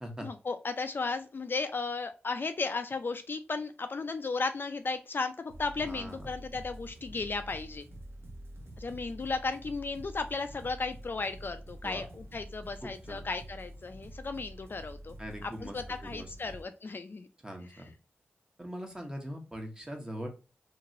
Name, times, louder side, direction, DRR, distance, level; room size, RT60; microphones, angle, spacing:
voice 1, 0.2-7.8 8.8-15.1 15.4-17.3 17.7-17.9, left 4 dB, 55° left, 8 dB, 0.3 m, -35 dB
sound 1, 5.5-16.6, right 1 dB, 70° right, 0.8 m, -47 dB
voice 2, 5.8-6.2 11.8-12.0 12.8-13.2 15.2-16.3 17.4-17.9 18.6-20.3, equal, 15° right, 3 dB, 1.0 m, -41 dB
2.9 x 2.8 x 2.5 m, 0.32 s
cardioid pair, 45°, 4 cm